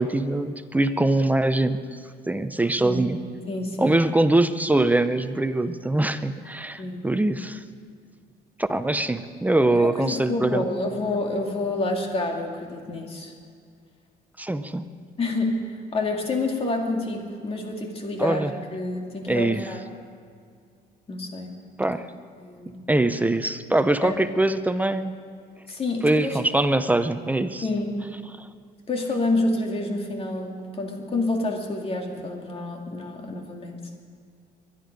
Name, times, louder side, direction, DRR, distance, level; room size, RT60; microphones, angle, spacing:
voice 1, 0.0-2.0 2.3-3.2 3.8-7.6 8.6-10.7 14.4-14.8 18.2-18.5 19.3-19.8 21.8-22.1 22.9-25.2 26.0-27.7 28.4-28.5, right 2 dB, 10° right, 11 dB, 0.6 m, -23 dB
voice 2, 3.5-4.0 6.8-7.0 9.7-13.3 15.2-19.8 21.1-21.5 22.4-22.8 24.0-24.2 25.7-26.4 27.6-27.9 28.9-33.8, left 2 dB, 35° left, 2 dB, 2.4 m, -28 dB
23.0 x 11.5 x 5.3 m, 2.2 s
cardioid pair, 110°, 17 cm